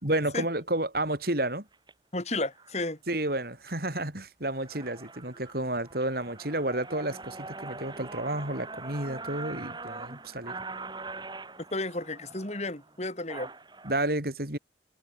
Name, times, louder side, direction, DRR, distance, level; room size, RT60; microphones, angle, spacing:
voice 1, 0.0-1.6 3.1-10.5 13.8-14.6, right 1 dB, 55° right, 5.0 m, -31 dB
sound 1, 1.7-1.9 2.6-2.8 3.3-3.7 4.2-4.3 4.5-13.9, right 3 dB, 25° right, 4.6 m, -43 dB
voice 2, 2.1-3.0 11.7-13.5, left 2 dB, 35° left, 3.7 m, -32 dB
head